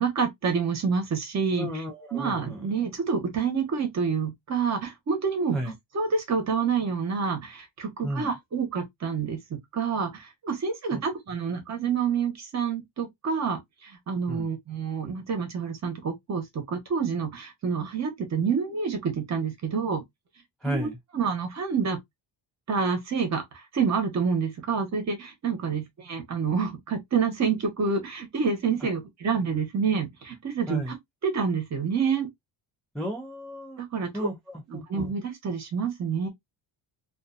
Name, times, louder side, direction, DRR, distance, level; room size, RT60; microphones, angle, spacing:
voice 1, 0.0-1.7 2.1-5.6 5.9-20.0 20.6-20.9 21.1-22.0 22.7-30.9 31.2-32.3 33.8-34.3 34.7-36.3, right 6 dB, 35° right, 0.9 m, -28 dB
voice 2, 1.6-2.7 5.5-5.7 8.0-8.3 10.9-11.0 14.3-14.5 20.6-21.0 28.8-28.9 30.7-30.9 32.9-33.8 34.1-35.1, equal, ahead, 0.3 m, -34 dB
2.5 x 2.2 x 2.4 m
cardioid pair, 165°, 46 cm